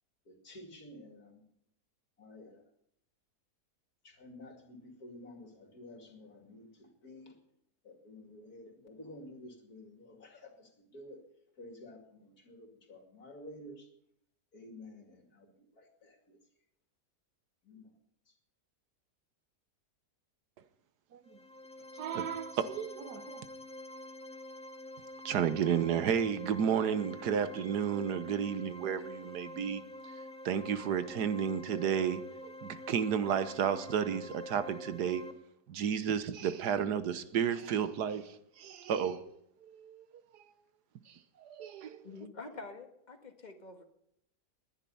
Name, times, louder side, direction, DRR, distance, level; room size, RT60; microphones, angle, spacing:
voice 1, 0.3-1.4 2.2-2.6 4.0-7.3 7.8-11.2 11.6-13.9 14.5-16.4 17.6-17.9, left 1 dB, 65° left, 3.0 m, -51 dB
sound 1, 21.2-35.3, left 1 dB, 5° left, 1.6 m, -47 dB
voice 2, 22.0-23.5 25.2-29.8 30.4-35.2 35.7-40.0 40.3-40.4 41.4-42.1, right 8 dB, 80° right, 1.5 m, -32 dB
voice 3, 42.0-43.8, left 3 dB, 30° left, 1.7 m, -47 dB
20.5 x 10.5 x 5.6 m
omnidirectional pair, 1.7 m